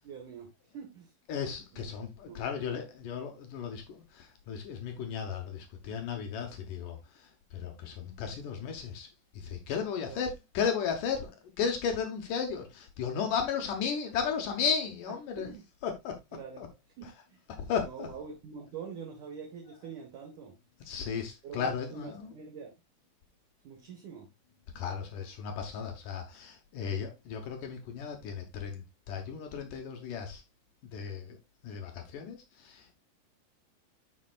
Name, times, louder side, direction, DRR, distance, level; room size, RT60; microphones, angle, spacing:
voice 1, 0.0-0.5 0.7-1.1 1.7-1.9 2.2-2.4 10.0-10.2 15.4-15.6 16.3-16.6 17.0-17.4 17.8-20.5 21.4-22.7 23.6-24.3 26.9-27.0, right 6 dB, 60° right, 2.4 m, -44 dB
voice 2, 1.3-9.1 9.3-15.5 15.8-16.2 16.6-16.7 17.6-18.1 20.9-22.3 24.8-30.4 30.9-31.4 31.6-32.9, left 6 dB, 75° left, 1.9 m, -35 dB
12.0 x 5.3 x 2.4 m
omnidirectional pair, 5.2 m